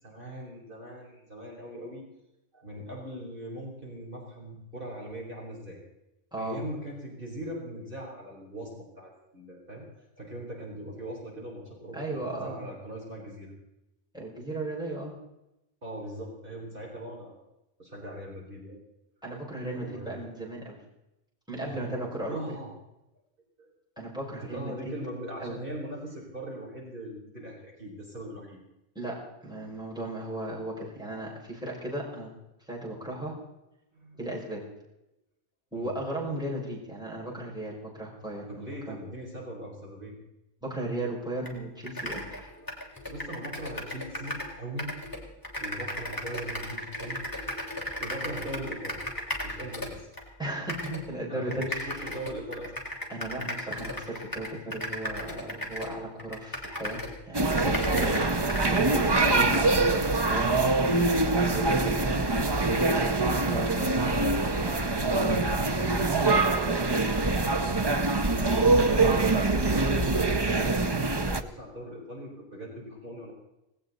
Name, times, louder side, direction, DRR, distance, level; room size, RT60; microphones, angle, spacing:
voice 1, 0.0-2.0 2.5-5.8 6.4-13.5 15.8-17.4 17.8-18.8 19.7-20.2 21.6-22.0 22.3-22.7 23.6-23.7 24.3-28.6 33.9-34.2 35.7-35.9 38.5-40.2 42.1-44.9 45.6-47.2 48.0-50.1 51.3-52.7 57.9-59.6 64.0-65.3 65.6-67.9 68.6-73.3, right 1 dB, 50° right, -2 dB, 4.1 m, -40 dB
voice 2, 11.9-12.6 14.1-15.1 19.2-20.8 21.5-22.6 24.0-24.9 25.4-25.6 29.0-32.3 32.7-33.4 34.2-34.6 35.7-39.0 40.6-42.5 50.4-52.0 53.1-58.6 58.9-61.0 61.3-64.0 64.6-64.7, right 1 dB, 5° right, -5 dB, 5.6 m, -36 dB
sound 1, 41.5-41.6 41.8-44.5 44.8-50.2 50.7-51.0 51.5-57.2 57.5-59.7, left 1 dB, 20° left, 3.3 m, -36 dB
sound 2, 57.3-71.4, right 3 dB, 25° right, 0.7 m, -24 dB
18.0 x 18.0 x 4.1 m, 0.90 s
omnidirectional pair, 1.1 m